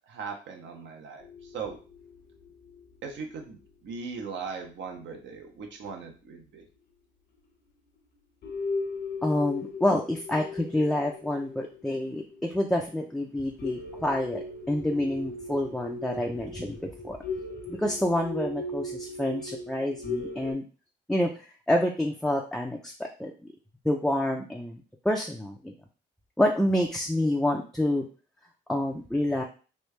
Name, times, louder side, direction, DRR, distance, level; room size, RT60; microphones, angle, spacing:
voice 1, 0.1-1.8 3.0-6.6, right 5 dB, 70° right, 3 dB, 0.9 m, -39 dB
sound 1, 1.2-5.1 5.6-5.7 6.7-6.8 7.4-7.5 7.9-8.1 8.4-20.5, left 3 dB, 55° left, 0.7 m, -38 dB
voice 2, 9.2-17.2 17.7-20.6 21.1-21.3 21.7-22.9 23.2-23.3 23.8-25.7 26.4-28.0 28.7-29.4, left 1 dB, ahead, 0 dB, 0.4 m, -28 dB
3.2 x 2.3 x 3.2 m, 0.36 s
cardioid pair, 90°, 20 cm